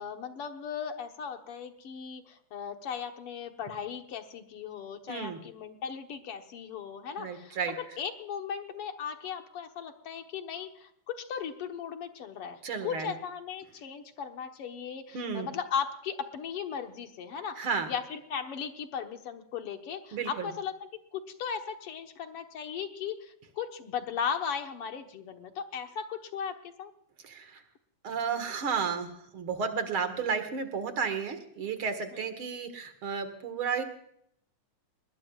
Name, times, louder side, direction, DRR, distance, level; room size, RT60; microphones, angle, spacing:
voice 1, 0.0-20.7 21.1-26.9, left 7 dB, 60° left, 5 dB, 1.7 m, -37 dB
voice 2, 5.1-5.4 7.2-7.7 12.6-13.1 15.1-15.5 17.6-17.9 20.1-20.5 27.2-27.6 28.0-33.8, right 6 dB, 50° right, 9 dB, 2.1 m, -32 dB
20.5 x 20.0 x 2.4 m, 0.72 s
omnidirectional pair, 3.7 m